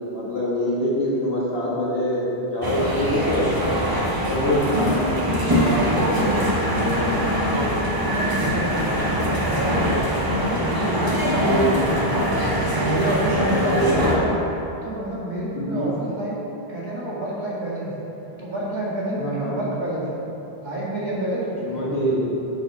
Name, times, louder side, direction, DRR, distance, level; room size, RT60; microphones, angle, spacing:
voice 1, 0.1-3.5 4.2-5.1 5.5-6.3 6.7-7.1 11.2-11.8 13.5-14.2 15.5-16.0 19.2-19.6 21.6-22.4, equal, 70° left, -7 dB, 1.8 m, -25 dB
sound 1, 2.6-14.2, equal, 20° right, 0.9 m, -23 dB
voice 2, 4.4-4.7 8.1-12.3 12.7-14.4 14.8-16.4 16.7-17.9 18.4-20.2 20.5-22.3, right 1 dB, 45° right, -8 dB, 2.1 m, -28 dB
10.5 x 4.6 x 4.4 m, 3.0 s
omnidirectional pair, 1.1 m